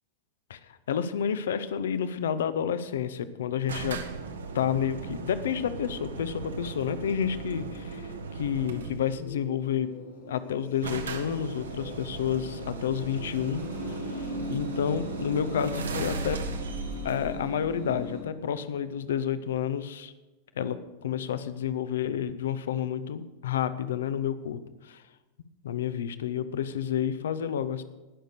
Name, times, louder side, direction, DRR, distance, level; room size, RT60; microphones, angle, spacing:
voice 1, 0.9-4.0 4.5-9.9 10.3-13.6 14.0-16.4 17.0-20.1 20.6-25.0 25.6-27.8, left 8 dB, 60° left, 14 dB, 0.7 m, -30 dB
sound 1, 3.7-9.2 10.2-10.3 10.5-10.6 10.8-18.3, right 4 dB, 70° right, 1.1 m, -37 dB
sound 2, 7.7-18.2, equal, 85° left, 4.9 m, -41 dB
18.0 x 6.6 x 6.6 m, 1.1 s
figure-of-eight pair, 90°, 0 cm